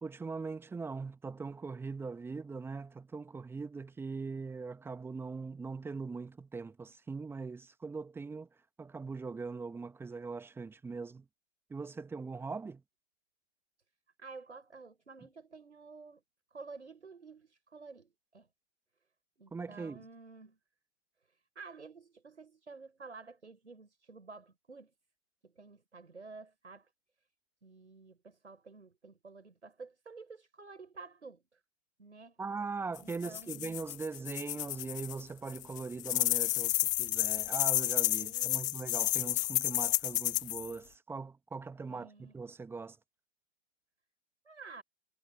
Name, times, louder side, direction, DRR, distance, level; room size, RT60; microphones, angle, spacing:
voice 1, 0.0-8.5 8.8-11.2 11.7-12.8 19.5-20.0 32.4-43.0, right 4 dB, 5° right, 1.6 m, -41 dB
voice 2, 14.2-16.2 16.5-18.5 19.4-20.6 21.3-24.9 25.4-26.9 27.6-31.6 32.0-32.4 33.0-33.8 38.2-38.8 41.8-42.3 44.4-44.8, right 4 dB, 75° right, 6.6 m, -51 dB
sound 1, 33.0-35.2 35.5-40.7, left 17 dB, 15° left, 0.4 m, -31 dB
figure-of-eight pair, 115°, 35 cm